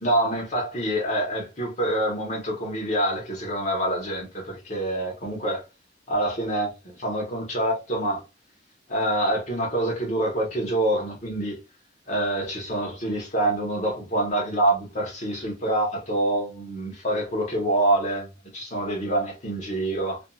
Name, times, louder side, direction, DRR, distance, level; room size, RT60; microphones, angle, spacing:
voice 1, 0.0-5.6 6.1-8.2 8.9-11.6 12.1-20.2, right 1 dB, 35° left, 1.1 m, -26 dB
2.7 x 2.5 x 2.3 m
head